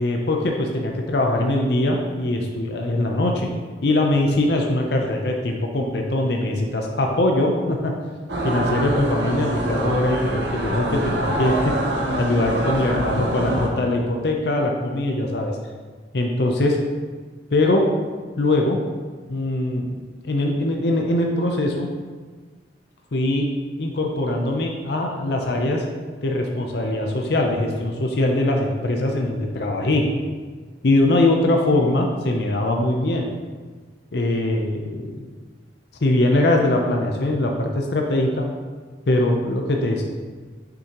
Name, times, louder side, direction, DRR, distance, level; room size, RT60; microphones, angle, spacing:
voice 1, 0.0-3.5 3.8-7.9 8.4-11.7 12.2-15.6 16.1-16.8 17.5-17.9 18.4-18.8 19.3-21.9 23.1-23.5 23.8-25.8 26.2-30.1 30.8-33.3 34.1-35.3 36.0-38.4 39.1-40.0, left 1 dB, 60° left, 1 dB, 0.6 m, -22 dB
sound 1, 8.3-13.7, right 1 dB, 65° right, 1.0 m, -25 dB
6.6 x 6.0 x 3.0 m, 1.4 s
head